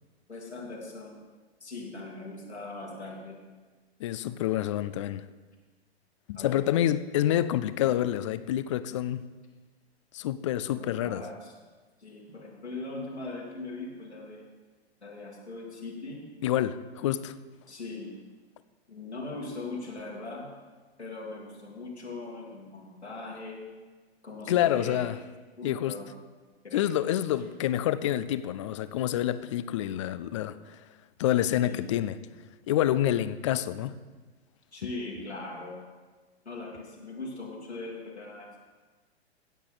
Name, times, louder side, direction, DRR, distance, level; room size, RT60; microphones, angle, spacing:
voice 1, 0.3-1.1 1.6-3.4 6.3-6.6 10.7-11.5 12.0-14.5 15.0-16.2 17.7-18.1 18.9-20.5 21.0-23.6 24.2-25.1 25.6-26.0 26.4-26.9 31.6-31.9 34.7-35.9 36.4-38.6, left 3 dB, 85° left, 2.6 m, -40 dB
voice 2, 4.0-5.3 6.3-9.3 10.1-11.2 16.4-17.4 24.5-25.2 25.6-26.0 26.7-30.8 31.2-32.2 32.7-34.0, left 12 dB, 30° left, 0.4 m, -27 dB
16.0 x 7.4 x 4.0 m
figure-of-eight pair, 105°, 32 cm